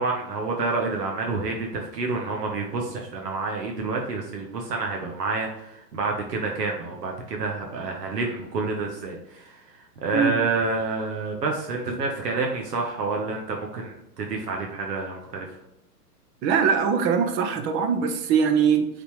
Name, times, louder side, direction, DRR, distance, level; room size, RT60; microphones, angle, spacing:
voice 1, 0.0-15.5, right 3 dB, 80° right, 1 dB, 1.2 m, -28 dB
voice 2, 16.4-18.9, right 6 dB, 25° right, 8 dB, 0.5 m, -22 dB
8.1 x 4.1 x 3.2 m, 0.82 s
hypercardioid pair, 120°, 48 cm